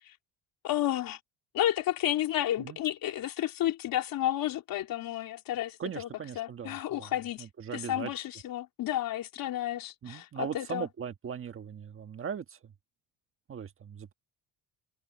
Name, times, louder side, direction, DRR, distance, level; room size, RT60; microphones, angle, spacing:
voice 1, 0.6-1.2 1.5-6.1 6.4-7.5 7.7-10.9, left 12 dB, 60° left, 3.5 m, -31 dB
voice 2, 5.8-7.1 7.4-8.1 10.0-12.7 13.5-14.1, right 7 dB, 35° right, 1.5 m, -39 dB
cardioid pair, 150°, 39 cm